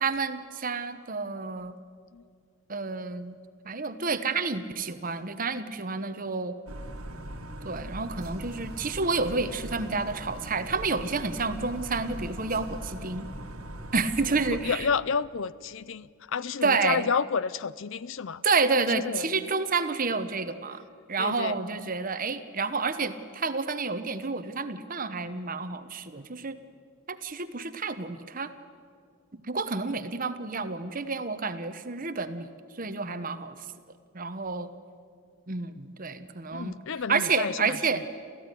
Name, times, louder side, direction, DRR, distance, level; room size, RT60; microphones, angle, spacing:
voice 1, 0.0-1.8 2.7-3.4 3.6-6.6 7.6-13.3 13.9-14.9 16.6-17.1 18.4-26.6 27.1-28.5 29.3-33.7 34.1-34.7 35.5-36.8 37.1-38.1, right 4 dB, 40° right, 11 dB, 1.1 m, -29 dB
sound 1, 6.7-14.7, right 1 dB, 85° right, 1.8 m, -40 dB
voice 2, 14.5-18.4 18.9-19.2 21.2-21.6 36.5-37.8, left 6 dB, 60° left, 18 dB, 0.5 m, -30 dB
28.5 x 15.0 x 10.0 m, 2.2 s
head